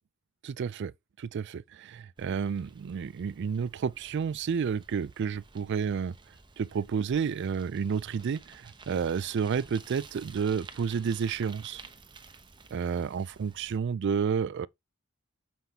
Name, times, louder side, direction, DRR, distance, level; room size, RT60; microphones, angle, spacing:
voice 1, 0.4-0.9 1.2-6.2 6.6-11.8 12.7-14.7, right 6 dB, 55° right, 0.3 m, -30 dB
Bicycle, 2.2-13.8, right 4 dB, 20° right, 0.8 m, -52 dB
7.1 x 5.9 x 2.8 m
head